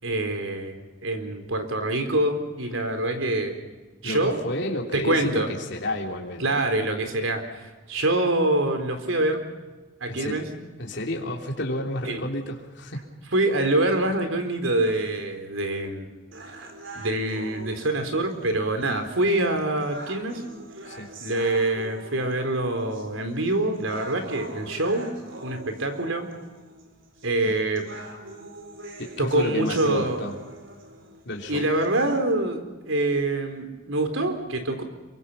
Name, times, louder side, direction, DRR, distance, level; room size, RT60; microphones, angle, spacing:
voice 1, 0.0-3.6 4.0-4.4 4.9-5.5 6.4-9.4 10.0-10.4 12.1-12.2 13.3-16.1 17.0-20.4 21.2-25.1 25.4-26.3 27.2-27.8 29.2-30.2 31.5-34.8, right 2 dB, 85° right, 7 dB, 4.1 m, -25 dB
voice 2, 4.0-6.4 10.1-10.4 10.8-13.1 20.8-21.1 27.4-27.5 29.0-30.4 31.2-31.7, left 1 dB, 60° left, 0 dB, 3.4 m, -31 dB
sound 1, 16.3-32.3, right 2 dB, 65° right, 4.3 m, -43 dB
28.0 x 24.0 x 5.7 m, 1.2 s
head